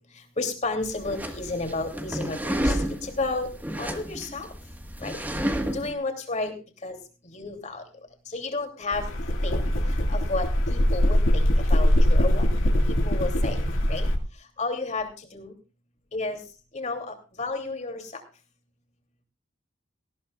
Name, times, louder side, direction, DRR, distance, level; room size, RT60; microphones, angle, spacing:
voice 1, 0.4-2.4 2.6-2.8 3.0-3.5 3.8-4.5 5.0-5.2 5.7-6.5 6.8-7.0 7.3-7.8 8.3-9.1 9.4-9.6 10.1-12.4 13.1-13.6 13.9-14.1 14.6-15.5 16.1-16.4 16.7-18.0, left 3 dB, 40° left, 5 dB, 3.0 m, -31 dB
sound 1, 0.8-5.9, equal, 10° right, 1.6 m, -31 dB
sound 2, 8.9-14.2, equal, 85° left, 2.4 m, -22 dB
19.0 x 15.5 x 2.4 m, 0.32 s
head